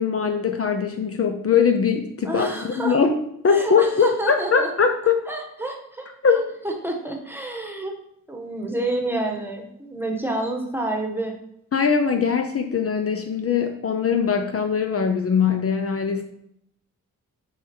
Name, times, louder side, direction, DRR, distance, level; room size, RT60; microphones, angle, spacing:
voice 1, 0.0-5.2 6.2-6.4 11.7-16.2, left 6 dB, 45° left, 5 dB, 0.7 m, -21 dB
voice 2, 2.2-2.9 3.5-4.7 5.3-7.9 8.3-11.3, right 2 dB, 5° right, 1 dB, 1.3 m, -29 dB
6.6 x 5.0 x 4.5 m, 0.74 s
wide cardioid pair, 130°, 33 cm